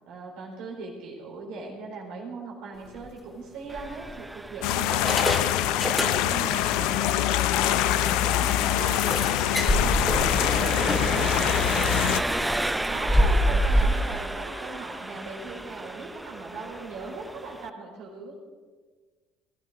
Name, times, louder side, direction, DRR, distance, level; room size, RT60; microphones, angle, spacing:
voice 1, 0.1-12.5 12.8-18.3, right 4 dB, 70° right, -3 dB, 4.1 m, -39 dB
sound 1, 2.9-3.1 3.8-4.4 4.9-6.6 6.9-7.0 7.4-7.5 7.9-8.0 8.9-13.8, equal, 10° left, 2.9 m, -27 dB
Engine, 3.7-17.7, right 1 dB, 10° right, 0.5 m, -34 dB
sound 2, 4.6-12.2, left 13 dB, 70° left, 0.5 m, -24 dB
18.0 x 13.0 x 5.0 m, 1.4 s
hypercardioid pair, 65°, 0 cm